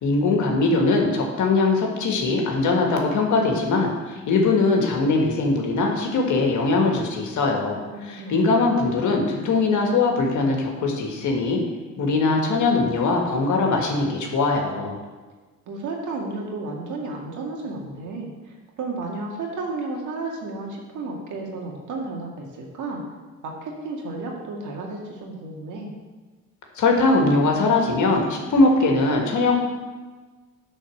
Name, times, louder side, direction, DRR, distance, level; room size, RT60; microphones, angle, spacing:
voice 1, 0.0-7.8 8.1-11.6 12.0-15.0 26.7-29.6, left 3 dB, 75° left, 1 dB, 1.7 m, -21 dB
voice 2, 8.2-8.7 15.7-23.0 23.4-25.9, right 3 dB, 80° right, 0 dB, 1.8 m, -32 dB
9.0 x 4.1 x 6.3 m, 1.3 s
cardioid pair, 90°, 30 cm